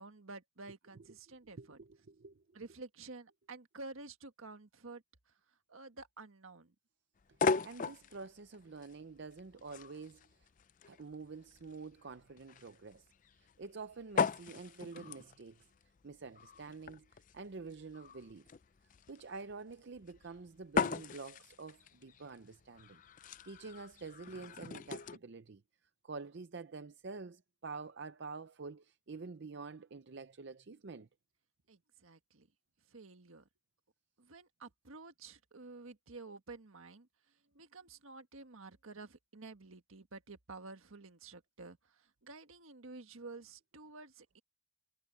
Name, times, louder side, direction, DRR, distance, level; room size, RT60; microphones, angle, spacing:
voice 1, 0.0-1.8 2.5-5.3 5.7-6.7 31.7-32.5 32.9-33.5 34.2-37.1 37.5-44.4, right 3 dB, 75° right, 1.6 m, -51 dB
voice 2, 1.6-2.4 7.6-10.2 10.9-13.1 13.4-15.7 16.0-18.4 19.1-25.6 26.0-31.1, right 4 dB, 55° right, 0.6 m, -48 dB
sound 1, 7.2-25.2, left 5 dB, 40° left, 0.4 m, -39 dB
head